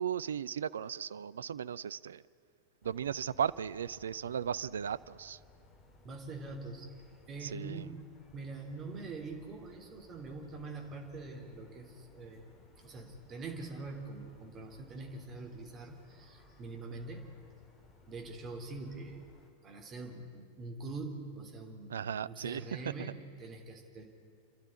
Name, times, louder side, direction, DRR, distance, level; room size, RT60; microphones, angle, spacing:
voice 1, 0.0-2.2 2.8-5.4 7.4-7.9 21.9-22.9, right 8 dB, 65° right, 17 dB, 0.5 m, -36 dB
sound 1, 2.8-19.5, left 2 dB, 25° left, 2.7 m, -61 dB
voice 2, 6.0-6.9 7.3-17.3 18.1-19.2 19.6-24.0, right 3 dB, 30° right, 2 dB, 3.3 m, -44 dB
29.0 x 12.5 x 9.7 m, 2.2 s
figure-of-eight pair, 90°, 0 cm